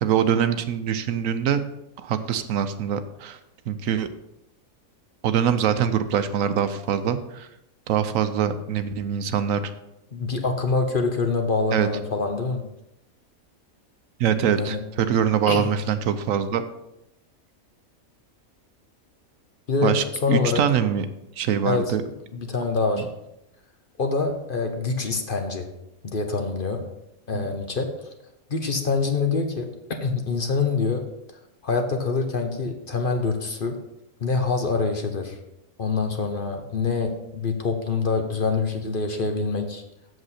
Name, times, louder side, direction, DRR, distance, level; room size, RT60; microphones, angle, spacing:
voice 1, 0.0-1.6 2.0-3.4 3.7-4.1 5.2-7.5 7.9-9.6 11.7-11.9 14.2-16.6 19.8-21.0 21.4-22.0 27.3-27.5, right 8 dB, 75° right, 10 dB, 1.0 m, -23 dB
voice 2, 10.1-12.7 14.6-14.8 15.5-15.7 19.7-20.6 21.6-21.9 22.3-23.1 24.0-25.7 26.0-26.8 27.3-28.1 28.5-31.1 31.6-33.8 34.2-35.4 35.8-39.8, left 4 dB, 45° left, 4 dB, 0.9 m, -25 dB
7.8 x 7.2 x 4.2 m, 0.86 s
omnidirectional pair, 1.4 m